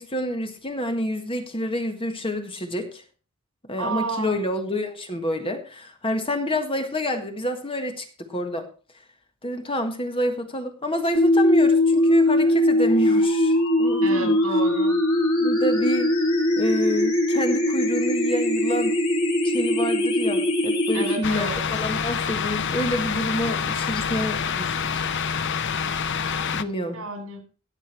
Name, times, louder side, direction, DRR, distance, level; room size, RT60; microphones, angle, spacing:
voice 1, 0.0-3.0 3.7-8.7 9.4-14.4 15.4-16.1 16.6-19.0 19.4-25.1 26.5-27.0, left 1 dB, 25° left, 6 dB, 1.6 m, -28 dB
voice 2, 3.8-4.3 14.0-15.0 20.9-21.6 26.9-27.4, right 4 dB, 75° right, 6 dB, 3.9 m, -31 dB
sound 1, 11.2-21.2, left 1 dB, 85° left, 5.3 m, -21 dB
sound 2, 21.2-26.6, left 6 dB, 60° left, 0.7 m, -27 dB
18.0 x 7.1 x 4.4 m, 0.37 s
head